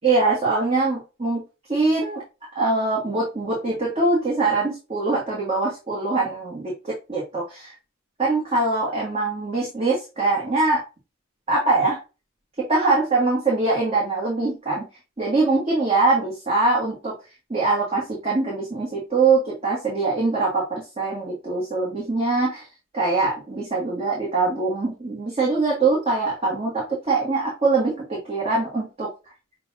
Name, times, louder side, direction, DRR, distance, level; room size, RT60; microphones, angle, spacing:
voice 1, 0.0-1.4 1.7-2.2 2.5-7.7 8.2-10.8 11.5-12.0 12.7-14.8 15.2-17.1 17.5-22.6 22.9-29.1, right 3 dB, 30° right, -4 dB, 1.5 m, -23 dB
6.6 x 2.4 x 2.7 m, 0.29 s
head